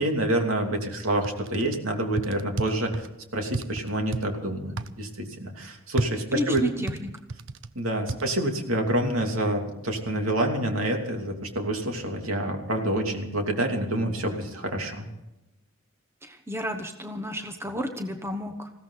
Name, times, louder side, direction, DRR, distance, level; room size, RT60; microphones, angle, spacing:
voice 1, 0.0-3.1 3.3-6.6 7.7-15.1, right 1 dB, 80° right, 3 dB, 2.8 m, -27 dB
sound 1, 1.2-1.8 2.2-3.1 3.5-4.2 4.8-4.9 6.0-7.7 8.1-8.2, right 3 dB, 60° right, 0.6 m, -31 dB
voice 2, 6.3-7.1 8.1-8.2 16.2-18.7, equal, 10° right, 5 dB, 1.2 m, -31 dB
20.5 x 16.0 x 4.0 m, 0.94 s
head